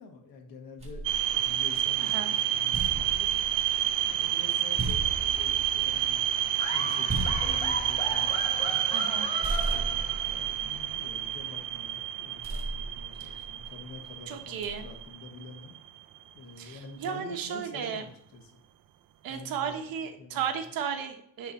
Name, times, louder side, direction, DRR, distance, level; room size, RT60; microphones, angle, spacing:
voice 1, 0.0-3.3 4.1-6.3 6.7-8.9 9.6-15.7 16.3-18.5 19.3-19.8 20.2-20.4, left 3 dB, 90° left, 2 dB, 1.6 m, -47 dB
Glass Bounce, 0.8-2.1 2.5-9.2 9.4-11.7 12.4-13.9 14.6-15.1, right 2 dB, 20° right, 1.4 m, -37 dB
sound 1, 1.0-16.0, right 11 dB, 70° right, 0.6 m, -29 dB
voice 2, 2.0-2.3 8.9-9.3 13.2-13.4 14.3-14.9 16.6-18.1 19.2-21.5, right 8 dB, 90° right, 6 dB, 1.1 m, -34 dB
Laughter, 6.6-10.6, left 1 dB, 20° left, 1.2 m, -37 dB
9.7 x 3.5 x 4.1 m, 0.67 s
cardioid pair, 165°, 33 cm